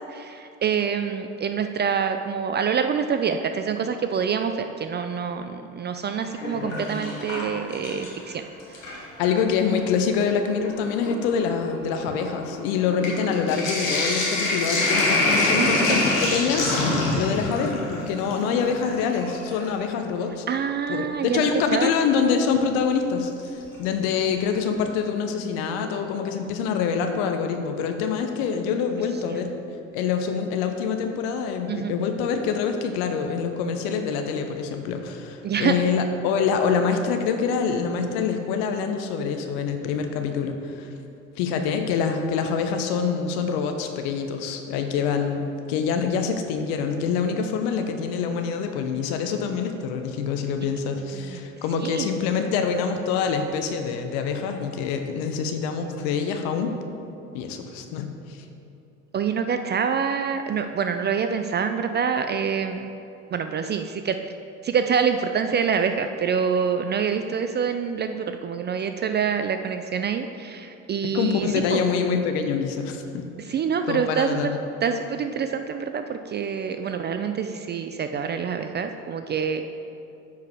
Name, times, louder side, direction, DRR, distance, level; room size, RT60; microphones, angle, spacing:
voice 1, 0.0-8.4 15.6-16.1 20.5-21.9 31.7-31.9 35.4-35.7 51.1-51.4 51.7-52.1 59.1-62.9 63.3-64.2 64.6-71.8 73.4-74.4 74.8-79.7, right 6 dB, 30° right, 8 dB, 0.4 m, -26 dB
Sink (filling or washing), 6.2-8.3 8.6-9.4 10.2-10.3 10.6-19.7 21.5-21.6 23.4-23.8 24.2-24.3 24.5-24.6, left 2 dB, 90° left, 1.4 m, -26 dB
voice 2, 9.2-20.4 20.9-29.5 29.9-40.9 41.4-56.7 57.3-58.4 71.1-73.5 73.9-74.7, left 6 dB, 65° left, 6 dB, 0.8 m, -25 dB
9.4 x 4.7 x 4.7 m, 2.7 s
hypercardioid pair, 60°, 39 cm